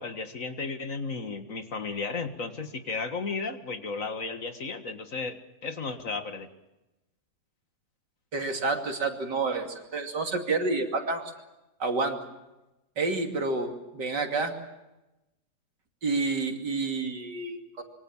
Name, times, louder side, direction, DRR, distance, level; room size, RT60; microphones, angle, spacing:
voice 1, 0.0-6.5, left 4 dB, 50° left, 8 dB, 2.0 m, -34 dB
voice 2, 8.3-11.3 11.8-12.2 13.0-14.5 16.0-17.8, right 3 dB, 80° right, 4 dB, 3.4 m, -29 dB
26.0 x 23.5 x 7.2 m, 0.98 s
omnidirectional pair, 1.8 m